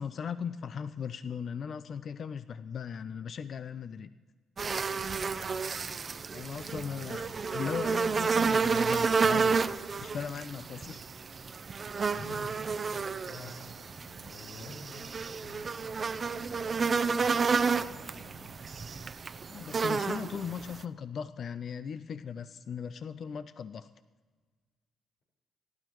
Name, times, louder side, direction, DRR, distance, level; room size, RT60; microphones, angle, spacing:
voice 1, 0.0-4.1 6.3-7.2 7.5-9.7 10.0-11.0 19.5-23.9, left 7 dB, 55° left, 13 dB, 0.4 m, -38 dB
sound 1, 4.6-20.8, right 5 dB, 40° right, 0.6 m, -31 dB
voice 2, 5.2-5.6 6.1-7.3 12.1-18.5, left 1 dB, 90° left, -4 dB, 4.7 m, -49 dB
28.5 x 12.0 x 3.1 m, 1.5 s
cardioid pair, 95°, 0 cm